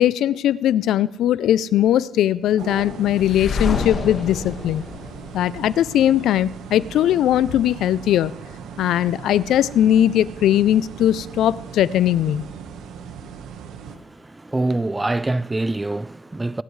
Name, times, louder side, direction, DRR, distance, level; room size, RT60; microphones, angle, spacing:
voice 1, 0.0-4.8 5.3-8.3 8.8-12.4, left 11 dB, 80° left, 0.4 m, -19 dB
sound 1, 2.6-14.0, right 6 dB, 85° right, 1.3 m, -38 dB
sound 2, 3.2-6.1, left 4 dB, 55° left, 1.7 m, -28 dB
voice 2, 13.9-16.6, right 2 dB, 15° right, 0.4 m, -25 dB
25.0 x 11.5 x 3.2 m
cardioid pair, 90°, 0 cm